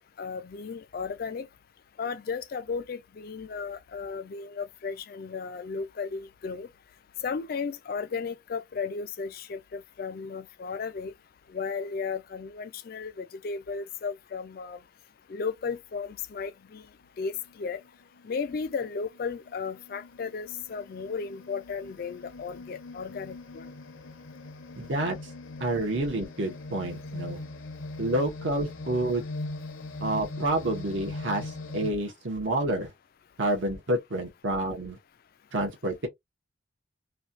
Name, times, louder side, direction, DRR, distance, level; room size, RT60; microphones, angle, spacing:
voice 1, 0.2-1.5 2.0-6.7 7.2-11.1 11.5-14.8 15.3-16.8 17.2-17.8 18.2-23.7, left 5 dB, 45° left, 0.3 m, -35 dB
sound 1, 17.3-17.5 18.2-31.9, left 2 dB, 75° left, 0.8 m, -41 dB
voice 2, 24.8-25.2 25.6-27.4 28.0-29.2 30.0-32.9 33.4-35.0 35.5-36.1, right 1 dB, 70° right, 1.0 m, -29 dB
3.1 x 2.3 x 2.5 m
head